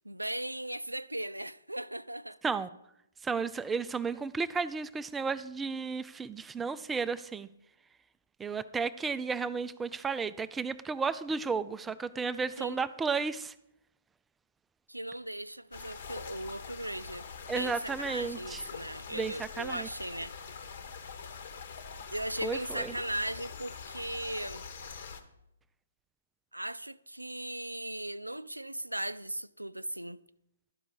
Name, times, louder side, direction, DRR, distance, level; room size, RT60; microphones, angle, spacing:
voice 1, 0.0-2.4 12.6-12.8 14.9-20.3 22.1-24.7 26.5-30.2, right 1 dB, 85° right, 0.4 m, -38 dB
voice 2, 3.2-7.5 8.4-13.5 17.5-18.6 19.1-19.9 22.4-22.9, right 5 dB, 10° right, 0.3 m, -33 dB
sound 1, 15.7-25.2, left 6 dB, 50° left, 1.1 m, -44 dB
12.0 x 5.1 x 7.0 m
figure-of-eight pair, 125°, 0 cm